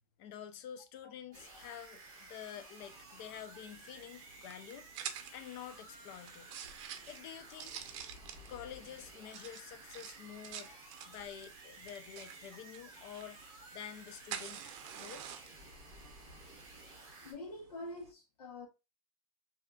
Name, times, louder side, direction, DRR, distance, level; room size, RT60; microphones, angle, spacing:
voice 1, 0.2-4.9 5.3-6.5 7.0-7.7 8.5-10.8 11.1-13.4 13.7-15.2, left 9 dB, 40° left, 0.5 m, -48 dB
voice 2, 1.3-1.7 2.5-2.6 6.9-7.1 10.6-10.8 13.0-13.1 17.2-18.7, left 2 dB, 90° left, 1.2 m, -47 dB
sound 1, 1.3-17.3, right 2 dB, 20° right, 1.5 m, -54 dB
sound 2, 2.8-18.1, right 9 dB, 55° right, 0.6 m, -50 dB
3.5 x 2.8 x 2.3 m
supercardioid pair, 155°, 19 cm